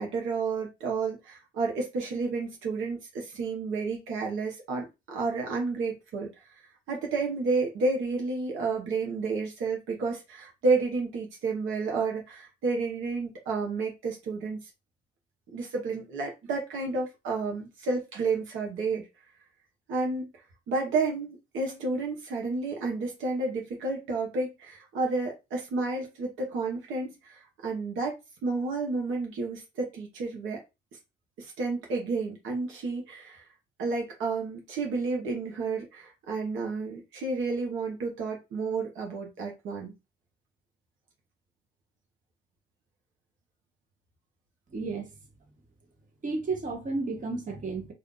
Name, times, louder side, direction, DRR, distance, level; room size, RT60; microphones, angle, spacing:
voice 1, 0.0-6.3 6.9-14.6 15.5-19.0 19.9-20.3 20.7-28.2 28.4-30.6 31.4-33.4 33.8-39.9, right 3 dB, 85° right, 1.1 m, -31 dB
voice 2, 44.7-45.1 46.2-47.9, right 3 dB, 40° right, 1.3 m, -32 dB
2.7 x 2.5 x 3.7 m
cardioid pair, 90°, 20 cm